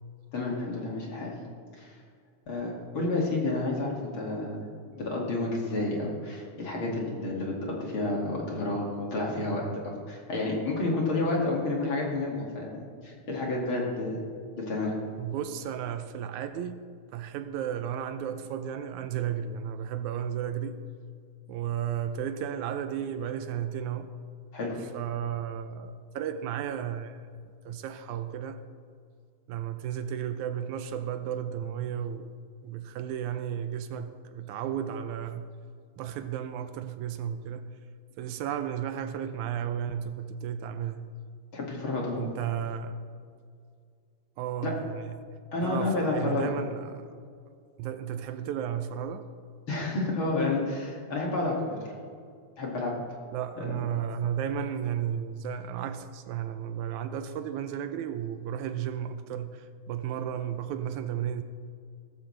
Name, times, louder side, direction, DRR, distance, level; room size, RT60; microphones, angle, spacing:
voice 1, 0.3-1.3 1.8-1.9 2.5-4.6 4.9-14.2 14.6-14.9 24.5-24.8 41.5-42.3 44.6-44.7 45.5-46.5 49.7-51.8 52.6-52.9 53.6-53.8, left 2 dB, 45° left, 2.9 m, -30 dB
voice 2, 15.2-16.8 17.1-20.8 21.5-24.1 24.9-27.2 27.7-28.6 29.5-35.5 36.0-37.7 38.2-41.1 42.2-43.0 44.4-45.2 45.6-47.0 47.8-49.3 53.3-61.4, right 9 dB, 80° right, 2.0 m, -33 dB
16.5 x 14.5 x 3.3 m
omnidirectional pair, 3.5 m